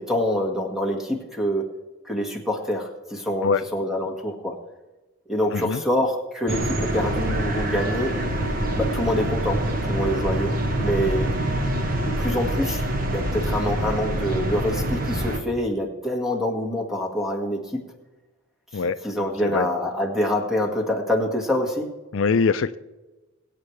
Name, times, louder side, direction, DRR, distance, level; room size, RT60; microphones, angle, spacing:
voice 1, 0.0-1.6 2.0-4.6 5.3-8.1 8.7-10.5 10.8-11.4 12.2-17.8 18.7-21.9, left 1 dB, ahead, 1 dB, 1.7 m, -26 dB
sound 1, 6.5-15.4, right 1 dB, 45° right, 1.3 m, -25 dB
voice 2, 22.1-22.8, left 5 dB, 65° left, 12 dB, 0.4 m, -22 dB
22.0 x 8.5 x 3.3 m, 1.1 s
head